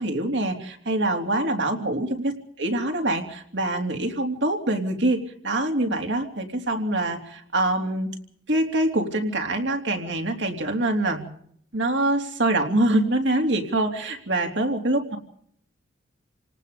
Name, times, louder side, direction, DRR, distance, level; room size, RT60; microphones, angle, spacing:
voice 1, 0.0-2.3 2.6-8.1 8.5-11.2 11.7-15.2, right 1 dB, 65° right, 3 dB, 3.5 m, -24 dB
29.0 x 19.0 x 5.3 m, 0.64 s
head